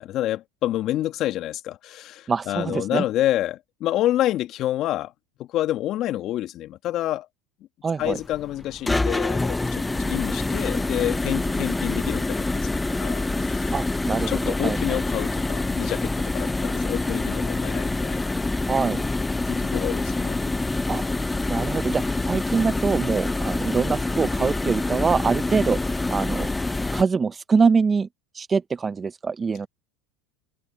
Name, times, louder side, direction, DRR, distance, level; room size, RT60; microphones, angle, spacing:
voice 1, 0.0-5.1 5.4-7.3 8.0-12.7 13.0-13.7 14.3-18.2 19.5-20.4, left 13 dB, 50° left, 2.5 m, -28 dB
voice 2, 2.3-3.0 7.8-8.2 13.7-15.0 18.7-19.0 20.9-21.0 21.5-25.8 26.1-26.5 26.9-28.1 28.3-29.7, right 5 dB, 25° right, 0.8 m, -24 dB
sound 1, 8.0-27.0, left 2 dB, 10° left, 1.0 m, -26 dB
open air
hypercardioid pair, 95°, 0 cm